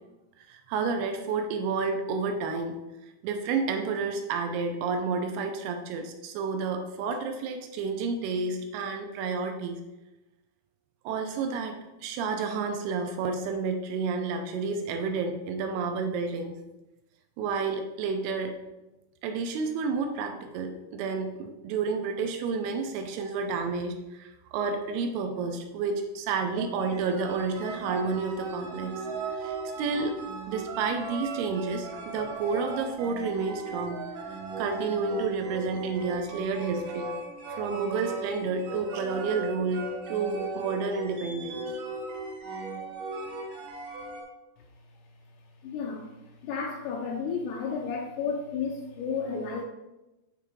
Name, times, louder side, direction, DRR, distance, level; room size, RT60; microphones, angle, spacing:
voice 1, 0.4-2.8 3.2-9.8 11.1-11.8 12.0-16.6 17.4-18.5 19.2-28.9 29.3-30.2 30.5-34.0 34.6-37.1 37.5-41.7, right 4 dB, 80° right, 5 dB, 2.5 m, -30 dB
sound 1, 26.5-44.2, right 3 dB, 65° right, 2.6 m, -37 dB
voice 2, 45.6-46.1 46.4-49.6, left 5 dB, 80° left, 0 dB, 2.7 m, -32 dB
9.0 x 3.5 x 4.5 m, 1.0 s
omnidirectional pair, 4.9 m